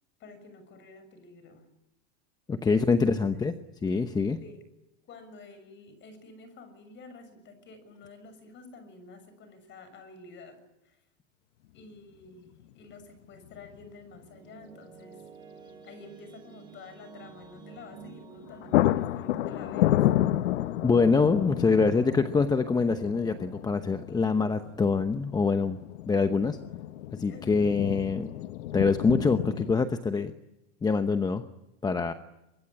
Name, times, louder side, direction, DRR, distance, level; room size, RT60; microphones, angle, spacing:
voice 1, 0.2-1.7 2.6-3.5 4.4-4.6 5.1-11.0 11.7-15.3 15.8-20.1 27.3-27.7, left 3 dB, 30° left, 11 dB, 6.7 m, -50 dB
voice 2, 2.5-3.5 3.8-4.4 20.8-25.8 26.1-26.6 27.1-28.3 28.7-30.3 30.8-31.4 31.8-32.1, left 4 dB, 10° left, 9 dB, 0.9 m, -25 dB
sound 1, 11.8-11.9 13.5-13.9 14.1-14.2 17.9-18.1 18.4-29.8, left 14 dB, 75° left, 1.1 m, -30 dB
sound 2, 13.7-24.7, right 5 dB, 10° right, 5.9 m, -51 dB
24.0 x 23.0 x 9.9 m, 0.95 s
supercardioid pair, 145°, 36 cm